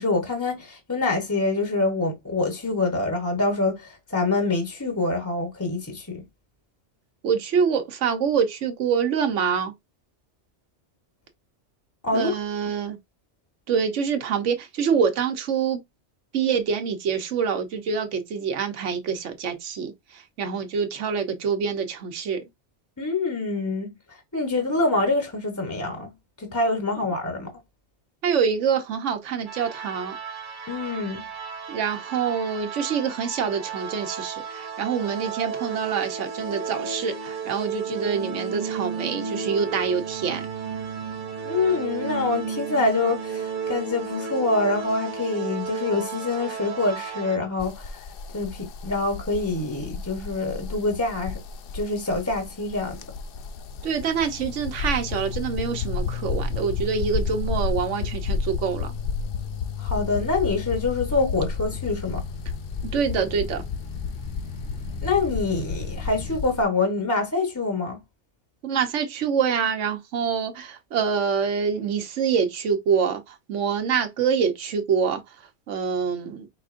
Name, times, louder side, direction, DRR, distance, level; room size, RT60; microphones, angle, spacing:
voice 1, 0.0-6.2 12.0-12.3 23.0-23.9 24.3-26.1 26.4-27.5 30.7-31.2 41.4-48.0 48.3-51.4 51.7-53.0 59.8-62.2 65.0-68.0, left 3 dB, 15° left, 0.8 m, -25 dB
voice 2, 7.2-9.7 12.1-13.0 13.7-15.8 16.3-22.4 28.2-30.2 31.7-40.4 53.8-58.9 62.9-63.6 68.6-75.2 75.7-76.5, right 6 dB, 85° right, 1.1 m, -26 dB
sound 1, 29.5-47.4, right 6 dB, 50° right, 0.8 m, -33 dB
sound 2, 47.6-66.6, left 5 dB, 60° left, 0.7 m, -32 dB
sound 3, 60.3-66.4, left 1 dB, 90° left, 2.0 m, -40 dB
5.1 x 3.7 x 2.5 m
omnidirectional pair, 1.2 m